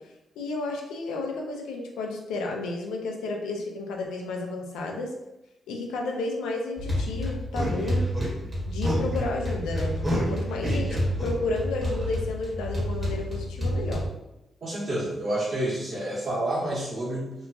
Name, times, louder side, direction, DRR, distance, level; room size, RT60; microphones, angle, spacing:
voice 1, 0.4-5.1 5.7-8.0 8.7-14.0, left 2 dB, 85° left, 1 dB, 0.4 m, -32 dB
sound 1, 6.8-14.1, equal, 40° right, 1.2 m, -28 dB
voice 2, 14.6-17.3, right 1 dB, 60° right, -6 dB, 1.3 m, -29 dB
2.9 x 2.2 x 2.4 m, 0.92 s
supercardioid pair, 45°, 0 cm